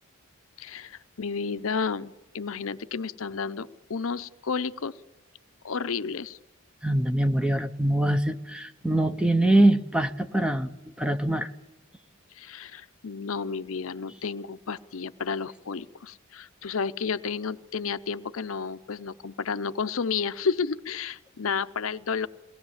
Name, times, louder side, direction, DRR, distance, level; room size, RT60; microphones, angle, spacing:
voice 1, 0.6-4.9 5.6-6.4 12.3-22.3, left 5 dB, 70° left, 12 dB, 0.7 m, -31 dB
voice 2, 6.8-11.5, right 1 dB, 5° right, 9 dB, 0.8 m, -23 dB
22.0 x 18.0 x 7.3 m, 1.0 s
head